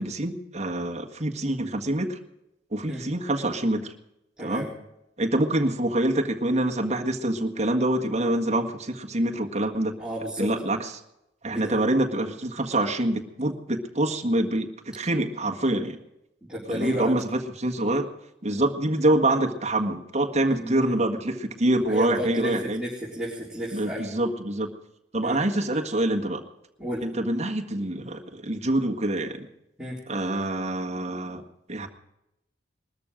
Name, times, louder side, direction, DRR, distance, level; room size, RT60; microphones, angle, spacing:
voice 1, 0.0-2.2 2.7-3.9 4.4-4.7 5.2-10.0 10.4-10.9 11.4-16.0 16.7-18.1 18.4-22.8 23.7-24.7 25.1-26.4 27.0-29.5 30.1-31.4 31.7-31.9, right 1 dB, 35° right, 3 dB, 1.7 m, -26 dB
voice 2, 4.4-4.7 10.0-10.5 11.5-11.7 16.5-17.1 20.5-20.9 21.9-24.2 25.2-25.4 26.8-27.1 29.8-30.0, equal, 5° right, -8 dB, 4.0 m, -32 dB
21.0 x 13.5 x 5.1 m, 0.86 s
head